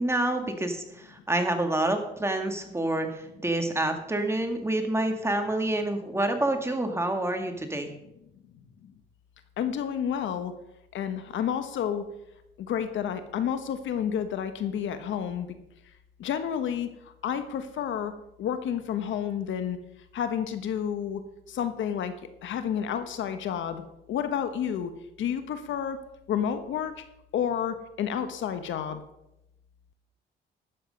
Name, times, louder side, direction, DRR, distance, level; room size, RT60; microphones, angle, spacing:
voice 1, 0.0-7.9, right 1 dB, 15° right, 5 dB, 1.9 m, -28 dB
voice 2, 9.6-10.5 10.9-12.0 12.6-15.5 16.2-16.9 17.2-18.1 18.4-19.8 20.1-21.2 21.5-22.1 22.4-23.8 24.1-24.9 25.2-26.0 26.3-26.9 27.3-29.0, left 8 dB, 75° left, 9 dB, 1.2 m, -30 dB
12.5 x 7.8 x 5.2 m, 0.84 s
cardioid pair, 90°, 20 cm